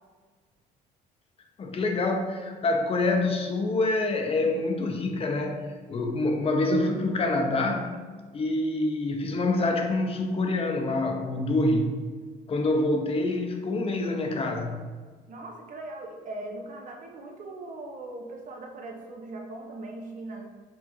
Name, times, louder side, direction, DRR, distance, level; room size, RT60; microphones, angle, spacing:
voice 1, 1.6-8.0 8.3-12.0 12.5-14.9, left 2 dB, 35° left, 4 dB, 0.6 m, -26 dB
voice 2, 15.3-20.4, right 2 dB, 50° right, 1 dB, 0.8 m, -40 dB
6.0 x 2.5 x 3.0 m, 1.5 s
cardioid pair, 110°, 17 cm